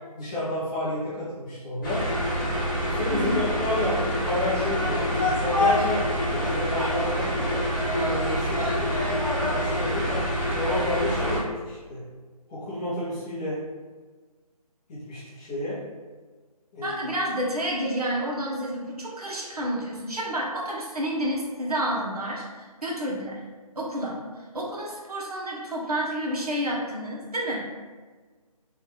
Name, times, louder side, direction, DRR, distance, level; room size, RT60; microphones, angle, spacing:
voice 1, 0.1-2.0 3.0-6.0 6.3-8.9 9.5-10.1 10.5-12.0 12.5-13.6 14.9-15.8 16.7-17.0, left 1 dB, 10° left, -11 dB, 0.5 m, -30 dB
sound 1, 1.8-11.4, equal, 30° left, 0.9 m, -26 dB
voice 2, 3.1-3.4 16.8-23.4 23.8-24.2 24.5-27.6, equal, 75° right, -3 dB, 1.0 m, -29 dB
3.2 x 2.4 x 3.2 m, 1.4 s
figure-of-eight pair, 155°, 20 cm